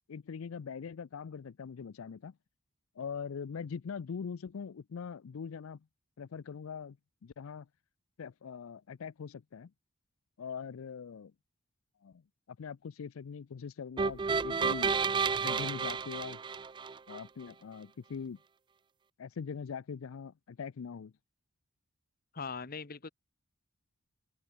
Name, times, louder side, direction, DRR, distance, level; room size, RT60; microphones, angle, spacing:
voice 1, 0.1-2.3 3.0-5.8 6.2-7.0 7.2-7.7 8.2-9.7 10.4-11.3 12.0-12.2 12.5-15.0 15.4-16.4 17.1-18.4 19.2-21.1, left 6 dB, 75° left, 0.4 m, -42 dB
sound 1, 14.0-17.2, right 5 dB, 20° right, 0.3 m, -31 dB
sound 2, 14.9-16.4, right 2 dB, 50° right, 1.3 m, -55 dB
voice 2, 22.3-23.1, left 5 dB, 45° left, 0.9 m, -40 dB
open air
head